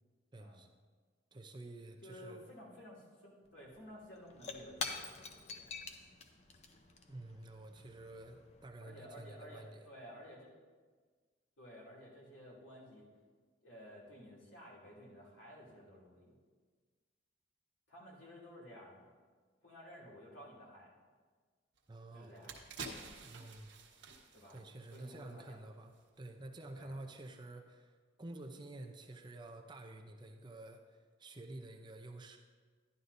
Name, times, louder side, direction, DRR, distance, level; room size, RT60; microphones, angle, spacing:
voice 1, 0.3-0.7 1.3-2.4 7.1-9.8 21.9-22.5 23.2-23.7 24.5-32.4, right 2 dB, 25° right, 3 dB, 0.6 m, -50 dB
voice 2, 2.0-6.1 8.8-10.5 11.6-13.1 13.6-16.4 17.9-19.2 19.6-21.0 22.0-22.6 24.3-24.6 24.9-25.6 26.7-27.0, equal, 80° left, -5 dB, 2.7 m, -54 dB
Shatter / Crushing, 3.4-3.5 3.8-8.6, left 4 dB, 35° left, 0.6 m, -46 dB
sound 1, 21.8-21.9 22.2-25.5 25.8-26.0, right 4 dB, 70° right, 1.3 m, -50 dB
11.5 x 11.0 x 2.6 m, 1.5 s
head